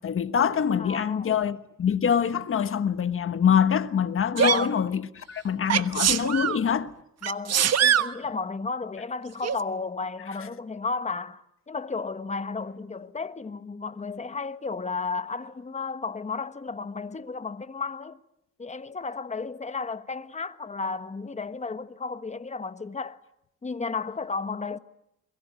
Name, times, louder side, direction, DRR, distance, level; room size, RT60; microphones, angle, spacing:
voice 1, 0.0-6.9, left 7 dB, 45° left, 1.4 m, -24 dB
voice 2, 0.8-1.3 4.5-5.1 7.2-18.2 18.6-23.2 23.6-24.8, left 4 dB, 25° left, 1.4 m, -33 dB
Sneeze, 4.4-4.7 5.7-6.6 7.2-8.1 9.4-9.6, right 9 dB, 55° right, 1.2 m, -23 dB
28.5 x 22.0 x 9.1 m
cardioid pair, 90°, 30 cm